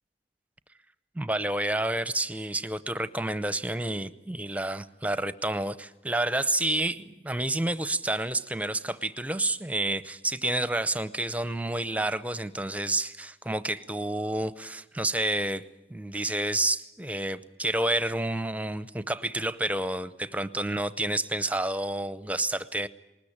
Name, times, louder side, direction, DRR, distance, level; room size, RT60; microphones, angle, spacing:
voice 1, 1.1-15.6 15.9-22.9, right 1 dB, 10° right, 14 dB, 0.7 m, -29 dB
20.0 x 20.0 x 8.7 m, 1.0 s
head